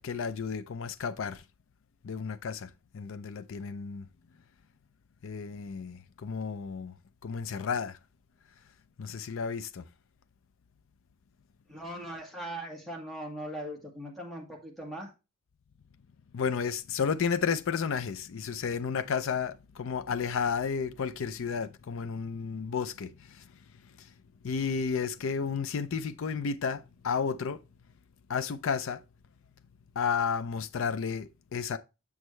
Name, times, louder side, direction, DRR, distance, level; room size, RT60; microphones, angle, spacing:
voice 1, 0.0-1.4 2.0-4.1 5.2-7.0 7.2-8.0 9.0-9.8 16.3-23.5 23.8-24.1 24.4-27.6 28.3-29.0 30.0-31.8, left 6 dB, 65° left, 0.4 m, -32 dB
voice 2, 11.7-15.1, right 1 dB, ahead, 1.7 m, -40 dB
7.1 x 6.3 x 3.1 m
head